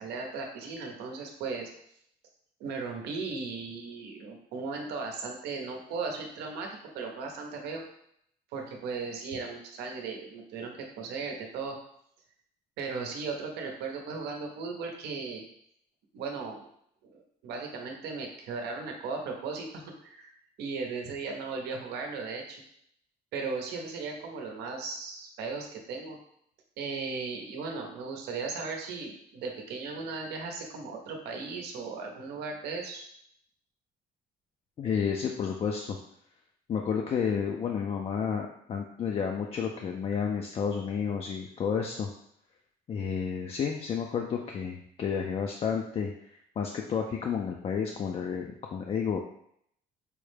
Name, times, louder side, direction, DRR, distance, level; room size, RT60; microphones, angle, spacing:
voice 1, 0.0-1.7 2.6-6.7 6.9-7.8 8.5-11.8 12.8-15.4 16.1-16.7 17.0-20.3 20.6-22.6 23.3-26.2 26.8-33.1, right 4 dB, 80° right, 2 dB, 0.8 m, -37 dB
voice 2, 34.8-36.0 36.7-42.1 42.9-49.2, left 6 dB, 35° left, 2 dB, 0.4 m, -31 dB
4.8 x 2.1 x 3.2 m, 0.71 s
cardioid pair, 110°, 17 cm